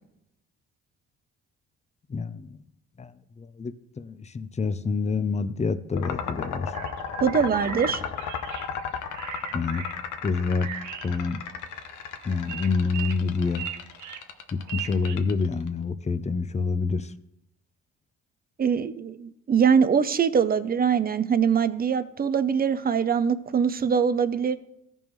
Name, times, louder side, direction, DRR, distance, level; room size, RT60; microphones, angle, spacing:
voice 1, 2.1-2.5 3.0-3.1 3.4-6.7 9.5-9.8 10.2-10.7 11.0-11.4 12.3-13.6 14.5-17.1, left 4 dB, 25° left, 13 dB, 0.5 m, -27 dB
sound 1, 5.9-15.7, left 7 dB, 80° left, 0.9 m, -34 dB
sound 2, 6.4-15.2, right 11 dB, 70° right, 0.6 m, -40 dB
voice 2, 7.2-8.0 18.6-24.6, right 7 dB, 30° right, 13 dB, 0.6 m, -23 dB
14.5 x 5.4 x 3.1 m, 0.81 s
cardioid pair, 90°, 30 cm